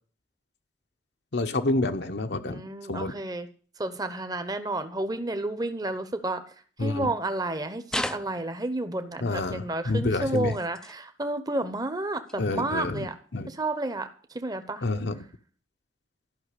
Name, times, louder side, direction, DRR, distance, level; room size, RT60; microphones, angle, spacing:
voice 1, 1.3-3.1 6.8-7.1 9.2-10.6 12.4-13.1 13.3-13.5 14.8-15.2, left 2 dB, 70° left, 6 dB, 0.9 m, -28 dB
voice 2, 2.4-3.5 3.8-6.4 6.8-13.1 13.5-14.8, right 2 dB, 20° right, 9 dB, 0.9 m, -31 dB
sound 1, 7.9-8.8 10.2-11.0 12.3-12.4 13.2-13.3, left 1 dB, 5° left, 0.4 m, -35 dB
12.5 x 5.9 x 8.3 m, 0.43 s
head